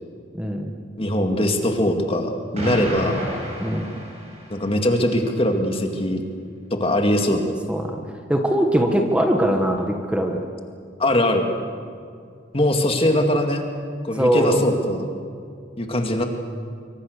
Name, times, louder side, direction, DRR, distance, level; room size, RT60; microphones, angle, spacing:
voice 1, 0.3-0.7 3.6-3.9 7.7-8.0 8.3-10.4 14.1-14.6, right 1 dB, 5° right, 3 dB, 1.5 m, -21 dB
voice 2, 1.0-3.2 4.5-6.2 6.7-7.5 11.0-11.5 12.5-13.6 14.0-15.1 15.8-16.2, left 1 dB, 30° left, 4 dB, 2.2 m, -21 dB
Explosion, 2.5-4.7, equal, 35° right, 6.7 m, -30 dB
25.0 x 24.5 x 6.7 m, 2.3 s
head